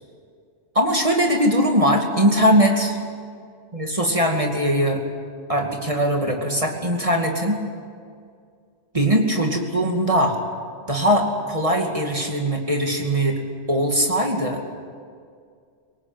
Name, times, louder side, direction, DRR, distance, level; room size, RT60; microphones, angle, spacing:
voice 1, 0.7-3.0 3.7-5.0 5.5-7.6 8.9-10.4 10.9-13.4 13.7-14.6, equal, 30° right, 1 dB, 2.5 m, -20 dB
24.5 x 19.0 x 9.1 m, 2.2 s
omnidirectional pair, 1.2 m